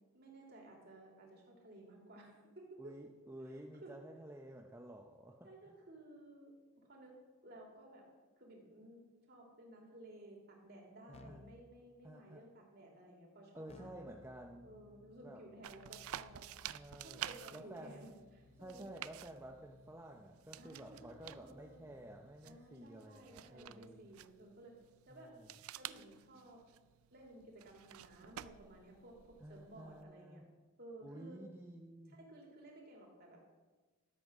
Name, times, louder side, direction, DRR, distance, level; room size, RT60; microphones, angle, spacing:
voice 1, 0.1-2.9 3.4-3.9 5.4-6.5 6.9-7.1 7.4-8.1 8.4-9.0 9.3-13.9 14.6-16.4 17.0-18.9 20.6-21.8 22.4-24.7 25.1-25.3 25.8-26.6 27.1-29.1 29.5-30.4 30.8-31.4 32.1-33.4, right 1 dB, 45° right, -1 dB, 2.9 m, -56 dB
voice 2, 2.8-5.5 11.1-11.4 12.0-12.4 13.5-14.7 15.2-15.4 16.7-17.2 17.5-18.1 18.6-24.1 25.1-25.5 29.4-30.4 31.0-32.2, right 1 dB, 10° right, 1 dB, 0.6 m, -52 dB
Keyboard (musical), 11.1-11.7 13.7-22.6, left 3 dB, 25° left, 0.5 m, -63 dB
sound 1, 15.6-30.0, right 12 dB, 75° right, 0.4 m, -52 dB
13.0 x 7.8 x 6.1 m, 1.3 s
head